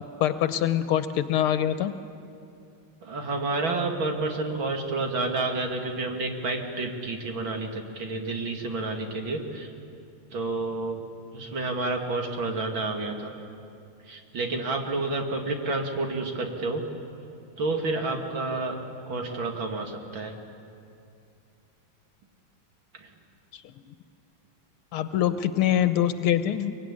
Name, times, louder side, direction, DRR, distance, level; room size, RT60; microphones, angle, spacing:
voice 1, 0.2-1.9 23.5-23.9 24.9-26.7, left 11 dB, 85° left, 10 dB, 1.7 m, -24 dB
voice 2, 3.0-9.7 10.3-13.3 14.1-16.8 17.6-18.8 19.1-20.3 22.9-23.1, right 3 dB, 65° right, 3 dB, 3.1 m, -30 dB
23.5 x 23.5 x 9.9 m, 2.6 s
omnidirectional pair, 2.4 m